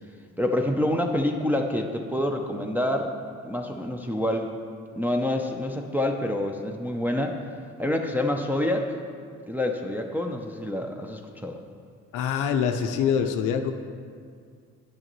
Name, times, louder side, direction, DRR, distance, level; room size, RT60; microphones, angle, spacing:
voice 1, 0.4-3.1 3.4-4.5 5.0-7.3 7.8-9.0 9.5-11.6, left 1 dB, 5° right, 2 dB, 0.5 m, -27 dB
voice 2, 12.1-13.7, left 7 dB, 90° left, 6 dB, 0.5 m, -24 dB
9.9 x 6.3 x 3.0 m, 2.1 s
cardioid pair, 90°, 30 cm